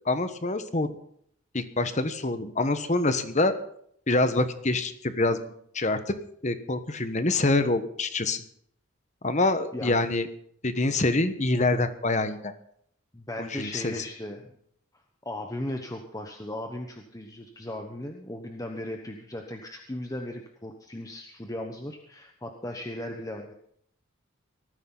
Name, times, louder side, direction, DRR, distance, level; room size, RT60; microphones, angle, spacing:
voice 1, 0.0-0.9 1.5-3.5 4.1-5.4 5.7-6.1 6.4-8.4 9.2-10.3 10.6-12.5 13.4-13.9, left 2 dB, 35° left, 10 dB, 1.2 m, -25 dB
voice 2, 13.1-14.6 15.2-23.5, left 1 dB, 15° left, 3 dB, 1.1 m, -37 dB
19.0 x 14.0 x 4.0 m, 0.65 s
head